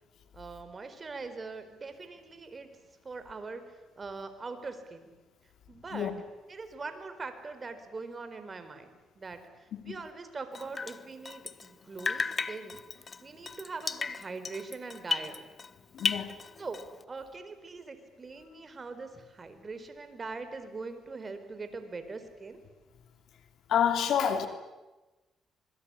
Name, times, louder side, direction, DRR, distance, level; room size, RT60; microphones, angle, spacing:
voice 1, 0.3-2.7 3.0-5.1 5.7-6.1 6.5-8.9 9.1-15.4 16.6-16.8 17.1-22.6, right 4 dB, 35° right, 4.5 m, -42 dB
Drip, 10.5-11.7 12.0-15.7 16.0-17.0, left 4 dB, 35° left, 1.2 m, -35 dB
voice 2, 15.9-16.3 23.7-24.5, left 8 dB, 70° left, 3.1 m, -28 dB
26.5 x 22.0 x 9.9 m
cardioid pair, 90°, 0 cm